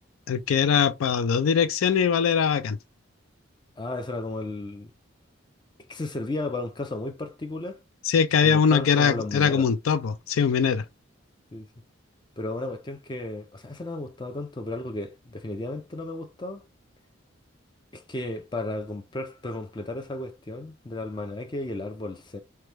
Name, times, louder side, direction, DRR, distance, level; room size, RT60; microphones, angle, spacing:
voice 1, 0.3-2.8 8.0-10.8, left 7 dB, 85° left, 0.4 m, -22 dB
voice 2, 3.8-4.9 5.9-7.8 8.4-9.7 11.5-11.7 12.4-16.6 17.9-22.4, left 2 dB, 20° left, 0.4 m, -34 dB
3.0 x 2.2 x 3.2 m
head